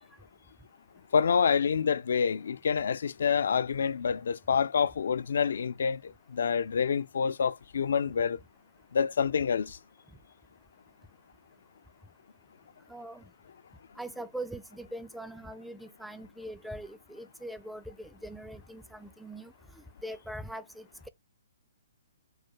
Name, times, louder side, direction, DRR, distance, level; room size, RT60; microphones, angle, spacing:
voice 1, 1.1-8.4 8.9-9.8, left 6 dB, 70° left, 0.3 m, -27 dB
voice 2, 12.9-13.2 14.0-21.1, right 1 dB, ahead, 0.4 m, -42 dB
4.7 x 2.2 x 4.5 m
hypercardioid pair, 140°, 0 cm